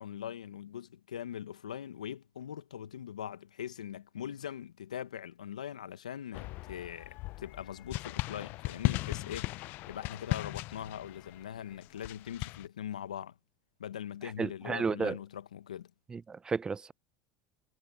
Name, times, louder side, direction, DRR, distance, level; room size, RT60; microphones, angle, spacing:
voice 1, 0.0-13.3 13.8-15.9, left 9 dB, 90° left, 1.0 m, -42 dB
sound 1, 6.3-12.7, left 20 dB, 55° left, 0.5 m, -37 dB
voice 2, 14.4-15.2 16.1-16.9, right 5 dB, 20° right, 0.4 m, -32 dB
hypercardioid pair, 80°, 4 cm